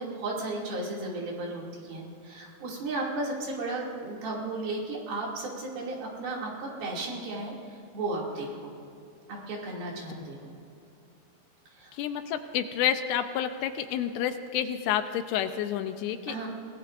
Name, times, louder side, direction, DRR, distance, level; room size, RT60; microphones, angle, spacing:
voice 1, 0.0-8.7 9.3-10.5 11.7-12.0 16.3-16.5, right 2 dB, 65° right, -3 dB, 4.4 m, -34 dB
voice 2, 11.9-16.5, left 10 dB, 80° left, 8 dB, 2.7 m, -29 dB
26.0 x 18.0 x 2.6 m, 2.7 s
omnidirectional pair, 4.7 m